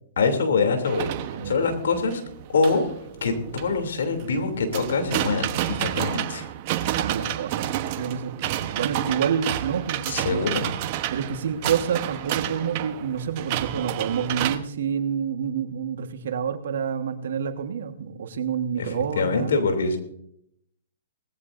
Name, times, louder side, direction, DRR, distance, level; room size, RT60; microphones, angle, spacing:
voice 1, 0.2-1.1 1.4-2.2 2.5-2.8 3.2-6.5 10.1-10.7 18.8-20.0, left 4 dB, 75° left, 6 dB, 3.0 m, -24 dB
sound 1, 0.8-14.6, right 13 dB, 45° right, 1.1 m, -30 dB
voice 2, 7.0-8.3 8.7-10.5 11.1-19.5, right 7 dB, 70° right, 7 dB, 1.5 m, -28 dB
19.5 x 15.5 x 2.7 m, 0.73 s
hypercardioid pair, 135°, 0 cm